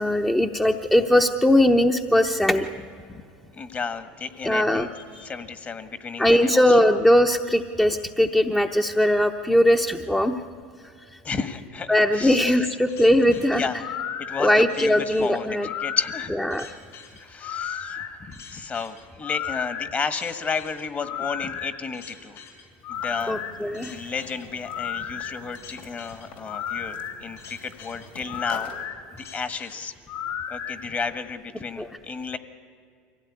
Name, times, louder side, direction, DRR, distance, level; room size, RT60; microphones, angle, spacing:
voice 1, 0.0-2.7 4.4-4.9 5.1-5.3 6.2-10.3 11.9-13.7 14.4-15.7 16.5-16.7 23.3-23.9 31.8-31.9, left 1 dB, 5° left, 3 dB, 0.9 m, -20 dB
voice 2, 3.5-4.9 5.2-6.8 11.2-12.7 13.1-13.2 13.5-13.8 14.2-16.3 17.1-22.4 22.9-23.4 23.7-28.7 29.3-29.9 30.5-32.4, left 5 dB, 30° left, 11 dB, 1.5 m, -32 dB
sound 1, 12.9-30.8, left 8 dB, 60° left, 4.7 m, -35 dB
sound 2, 22.9-28.8, left 3 dB, 80° left, 3.4 m, -46 dB
24.0 x 16.5 x 9.8 m, 2.3 s
supercardioid pair, 100°, 5 cm